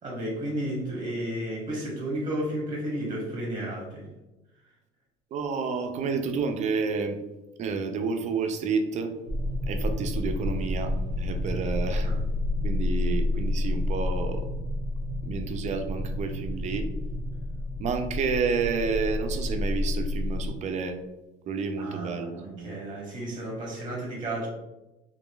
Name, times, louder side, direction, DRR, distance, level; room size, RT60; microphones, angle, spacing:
voice 1, 0.0-4.1 12.0-12.2 21.8-24.5, right 1 dB, 25° right, -2 dB, 1.0 m, -33 dB
voice 2, 5.3-7.2 7.6-9.1 9.7-12.1 12.6-14.5 15.2-16.9 17.8-21.0 21.5-22.7, right 5 dB, 45° right, 6 dB, 0.4 m, -30 dB
sound 1, 9.3-20.5, left 1 dB, 70° left, 0.9 m, -29 dB
2.9 x 2.4 x 2.2 m, 1.0 s
supercardioid pair, 90°, 17 cm